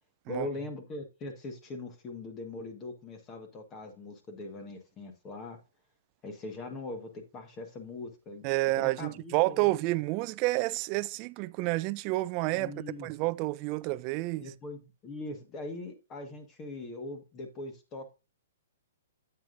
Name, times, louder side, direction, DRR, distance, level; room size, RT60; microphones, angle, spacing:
voice 1, 0.3-5.6 6.2-8.4 8.8-9.7 12.5-13.1 14.4-18.1, left 2 dB, 25° left, 1.5 m, -41 dB
voice 2, 8.4-12.7 13.0-14.5, right 20 dB, 35° right, 0.4 m, -29 dB
9.1 x 7.9 x 2.6 m
hypercardioid pair, 145°, 0 cm